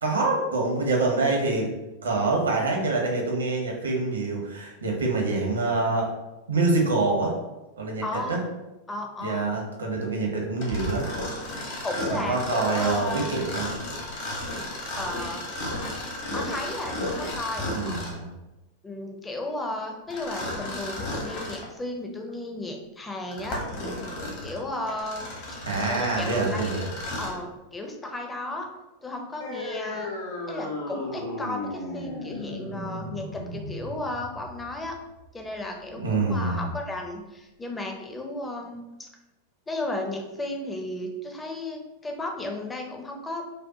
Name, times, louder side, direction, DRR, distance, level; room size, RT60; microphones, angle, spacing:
voice 1, 0.0-1.7 2.0-6.1 6.5-7.3 7.8-8.0 8.3-8.4 9.2-11.1 12.1-13.7 17.7-18.3 25.6-26.9 36.0-36.7, right 3 dB, 70° right, 0 dB, 0.9 m, -26 dB
voice 2, 8.0-8.4 8.9-9.5 11.8-13.3 15.0-15.4 16.3-17.7 18.8-23.6 24.4-25.6 25.9-26.7 27.2-28.7 29.0-30.1 30.5-34.9 35.3-39.1 39.7-43.5, left 2 dB, 15° left, 2 dB, 0.6 m, -34 dB
Mechanisms, 10.6-18.3 20.1-21.7 22.3-22.4 23.1-27.4, left 1 dB, 50° left, 1.1 m, -34 dB
sound 1, 29.4-36.4, left 2 dB, 70° left, 1.0 m, -36 dB
5.2 x 2.1 x 2.8 m, 1.0 s
figure-of-eight pair, 90°, 0 cm